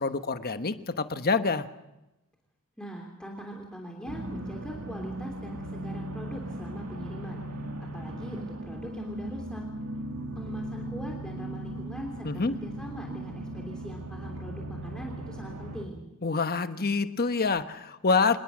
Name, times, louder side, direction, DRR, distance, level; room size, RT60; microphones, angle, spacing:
voice 1, 0.0-1.7 12.2-12.5 16.2-18.4, left 4 dB, 45° left, 10 dB, 1.2 m, -26 dB
voice 2, 2.8-7.4 7.8-9.6 10.3-16.0, equal, 5° left, 0 dB, 3.2 m, -41 dB
sound 1, 4.1-15.9, right 1 dB, 90° right, 2.5 m, -38 dB
26.5 x 20.5 x 6.3 m, 0.96 s
head